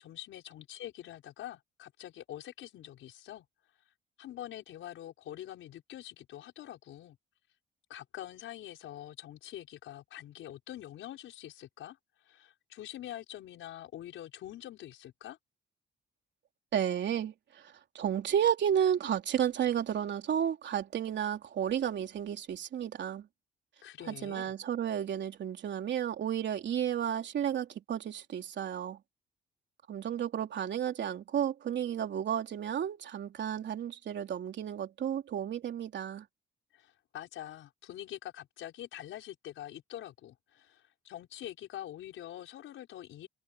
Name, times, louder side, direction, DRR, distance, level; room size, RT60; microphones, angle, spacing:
voice 1, 0.0-3.4 4.2-7.2 7.9-12.0 12.3-15.4 23.8-24.5 36.7-43.3, left 12 dB, 80° left, 6.1 m, -45 dB
voice 2, 16.7-23.3 24.0-29.0 29.9-36.3, right 9 dB, 65° right, 3.5 m, -32 dB
cardioid pair, 90°, 20 cm